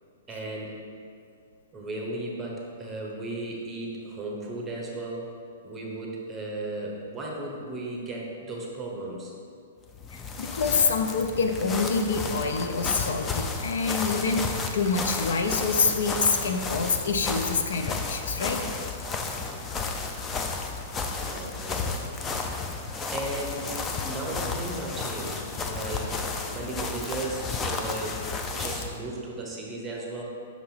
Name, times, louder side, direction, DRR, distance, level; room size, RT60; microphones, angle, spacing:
voice 1, 0.3-0.7 1.7-5.3 5.6-9.3 21.2-22.1 23.1-23.7 24.0-26.2 26.5-28.2 28.5-30.2, right 2 dB, 10° right, -2 dB, 0.8 m, -35 dB
sound 1, 9.9-29.0, left 4 dB, 15° left, 0.3 m, -32 dB
voice 2, 10.1-18.8, left 4 dB, 80° left, 6 dB, 0.5 m, -26 dB
5.9 x 2.9 x 5.6 m, 2.3 s
hypercardioid pair, 160°, 0 cm